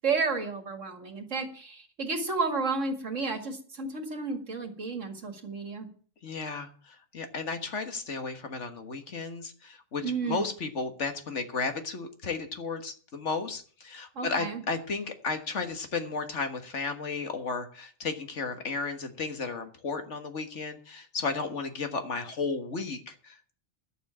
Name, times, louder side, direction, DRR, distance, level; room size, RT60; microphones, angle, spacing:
voice 1, 0.0-5.9 10.0-10.5 14.2-14.6, right 4 dB, 65° right, 6 dB, 2.4 m, -32 dB
voice 2, 6.2-23.5, left 4 dB, 60° left, 7 dB, 1.8 m, -34 dB
11.0 x 7.2 x 8.8 m, 0.43 s
omnidirectional pair, 1.4 m